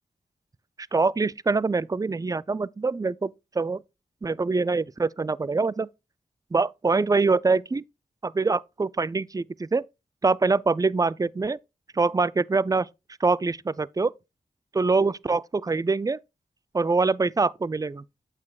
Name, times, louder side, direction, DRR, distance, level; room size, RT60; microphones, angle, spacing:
voice 1, 0.9-3.3 3.6-3.8 4.2-5.9 6.5-7.8 8.2-9.8 10.2-11.6 11.9-12.9 13.2-14.1 14.7-16.2 16.7-18.0, right 4 dB, 20° right, 0.4 m, -24 dB
8.4 x 8.3 x 2.3 m
cardioid pair, 45°, 16 cm